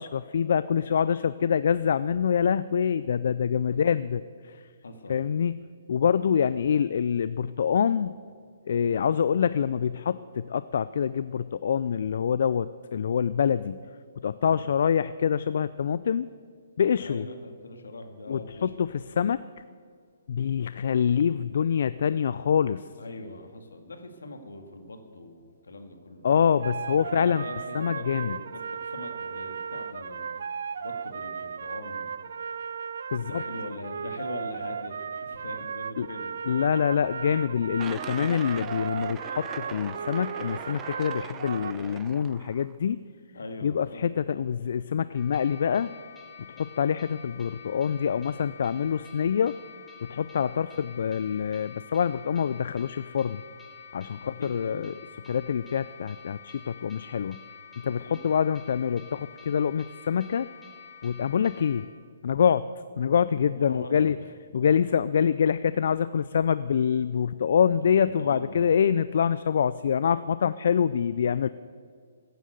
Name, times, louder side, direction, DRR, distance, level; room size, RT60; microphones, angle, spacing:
voice 1, 0.0-4.6 5.1-5.5 5.9-8.2 8.7-13.8 14.2-16.3 16.8-17.3 18.3-19.4 20.3-22.8 26.2-27.4 27.7-28.4 33.1-33.4 36.0-36.1 36.5-43.0 43.6-45.9 46.5-49.5 50.0-53.4 53.9-54.9 55.3-57.4 57.8-60.5 61.0-61.9 62.2-62.6 63.0-64.2 64.5-71.5, left 7 dB, 60° left, 15 dB, 0.3 m, -25 dB
voice 2, 4.8-5.2 14.4-14.7 17.0-18.9 23.0-26.3 26.9-30.4 30.8-32.1 33.2-36.4 43.3-44.1 54.2-55.0 57.8-58.2 63.4-64.1 67.7-68.7, left 2 dB, 80° left, 5 dB, 2.0 m, -42 dB
sound 1, 26.6-41.7, right 6 dB, 65° right, 0.4 m, -36 dB
sound 2, 37.8-42.8, right 9 dB, 20° right, 0.6 m, -42 dB
sound 3, 45.2-61.8, left 6 dB, 10° left, 2.9 m, -48 dB
15.5 x 9.2 x 8.0 m, 2.2 s
hypercardioid pair, 140°, 0 cm